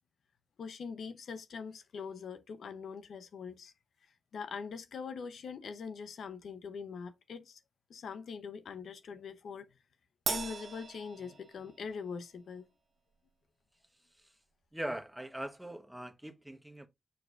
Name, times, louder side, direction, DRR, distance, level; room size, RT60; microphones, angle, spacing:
voice 1, 0.6-3.7 4.3-7.6 7.9-9.7 10.3-12.7, left 5 dB, 80° left, 0.8 m, -43 dB
Crash cymbal, 10.3-11.9, right 5 dB, 65° right, 1.0 m, -38 dB
voice 2, 14.7-16.9, right 1 dB, 10° right, 1.2 m, -41 dB
6.7 x 6.5 x 2.5 m
cardioid pair, 55°, 0 cm